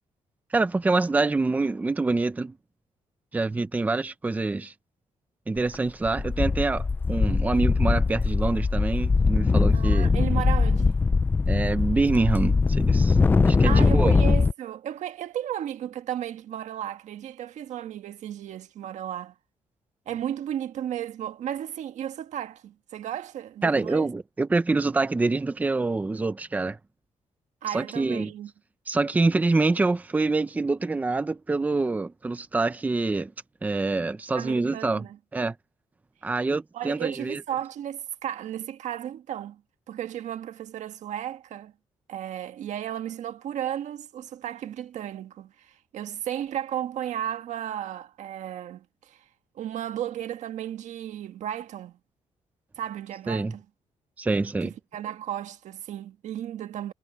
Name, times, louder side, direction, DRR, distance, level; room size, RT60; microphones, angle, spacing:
voice 1, 0.5-2.6 3.3-4.7 5.5-10.1 11.5-13.2 13.5-14.2 23.6-26.8 27.7-28.3 28.9-33.3 33.6-35.0 35.3-35.5 36.2-37.4 53.3-53.5 54.2-54.7, right 3 dB, 15° right, 0.7 m, -26 dB
sound 1, 5.6-5.8 6.1-14.5, left 4 dB, 15° left, 0.4 m, -21 dB
voice 2, 9.7-11.0 13.6-19.3 20.1-24.1 27.6-28.5 34.3-35.2 36.7-39.6 39.9-41.7 42.1-49.2 49.5-52.0 52.8-53.6 54.6-56.9, right 10 dB, 85° right, 1.5 m, -34 dB
wide cardioid pair, 180°, 12 cm